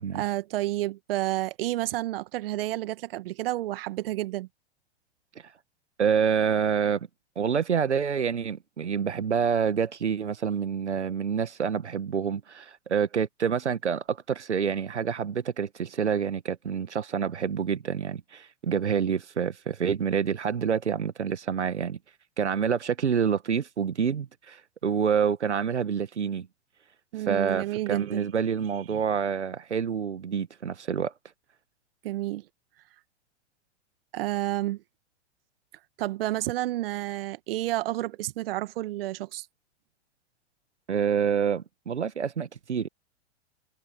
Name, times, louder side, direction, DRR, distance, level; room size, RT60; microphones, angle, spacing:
voice 1, 0.1-4.5 27.1-28.3 28.9-29.0 32.0-32.5 34.1-34.8 36.0-39.4, right 16 dB, 55° right, 1.6 m, -30 dB
voice 2, 6.0-7.0 7.3-22.0 22.4-26.5 27.3-31.1 40.9-42.9, right 7 dB, 80° right, 1.5 m, -27 dB
figure-of-eight pair, 105°, 34 cm